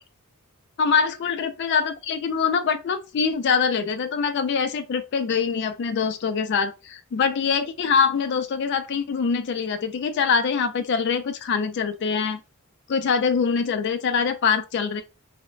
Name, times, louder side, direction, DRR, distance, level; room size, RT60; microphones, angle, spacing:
voice 1, 0.8-12.4 12.9-15.0, left 6 dB, 50° left, 0.3 m, -24 dB
2.9 x 2.1 x 2.5 m
head